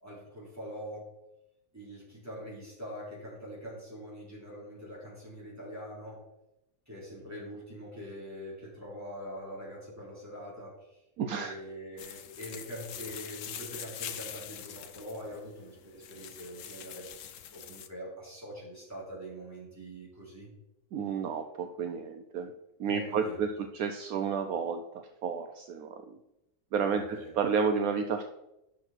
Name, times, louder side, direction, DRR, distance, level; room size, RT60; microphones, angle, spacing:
voice 1, 0.0-1.1 1.7-6.2 6.9-11.0 11.3-17.1 17.5-20.5 22.9-23.4 26.9-27.3, equal, 10° right, -6 dB, 3.9 m, -43 dB
voice 2, 11.2-11.6 20.9-22.5 22.8-26.0 26.7-28.2, right 6 dB, 70° right, 6 dB, 1.0 m, -31 dB
sound 1, 12.0-17.9, left 9 dB, 65° left, 0.9 m, -44 dB
9.7 x 6.3 x 4.4 m, 0.90 s
omnidirectional pair, 1.6 m